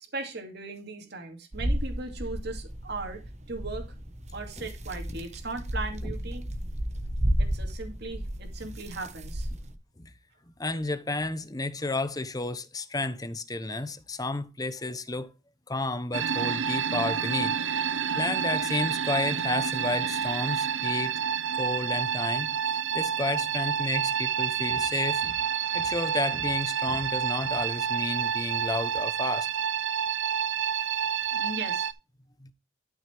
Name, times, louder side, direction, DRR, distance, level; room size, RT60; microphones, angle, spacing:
voice 1, 0.1-3.2 3.5-3.9 4.3-6.5 7.4-9.5 31.3-31.9, right 3 dB, 55° right, 2.4 m, -38 dB
sound 1, 1.5-9.7, equal, 35° right, 1.3 m, -32 dB
voice 2, 10.6-15.3 15.7-17.6 17.8-21.2 21.6-25.4 25.7-29.5 32.4-32.5, left 2 dB, 20° left, 0.8 m, -32 dB
sound 2, 16.1-31.9, right 7 dB, 75° right, 0.8 m, -29 dB
12.5 x 6.3 x 3.4 m
head